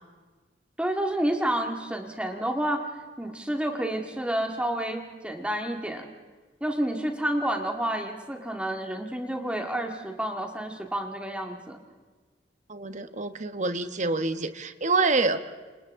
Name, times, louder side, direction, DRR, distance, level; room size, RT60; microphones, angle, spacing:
voice 1, 0.8-2.9 3.2-6.1 6.6-11.8, right 1 dB, 5° right, 3 dB, 2.0 m, -29 dB
voice 2, 12.7-15.4, right 3 dB, 40° right, 9 dB, 1.2 m, -26 dB
29.5 x 27.5 x 3.7 m, 1.4 s
head